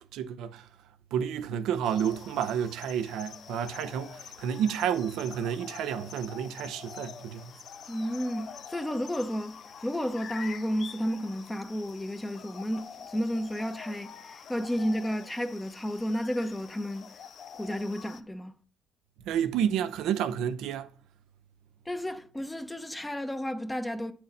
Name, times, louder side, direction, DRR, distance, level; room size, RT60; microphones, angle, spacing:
voice 1, 0.1-0.7 1.1-7.5 19.3-20.9, right 8 dB, 85° right, 0.6 m, -30 dB
sound 1, 1.8-18.2, left 7 dB, 65° left, 0.6 m, -46 dB
voice 2, 7.9-17.1 17.6-18.5 21.9-24.1, equal, 15° left, 0.8 m, -32 dB
9.3 x 4.4 x 5.3 m
supercardioid pair, 70°, 0 cm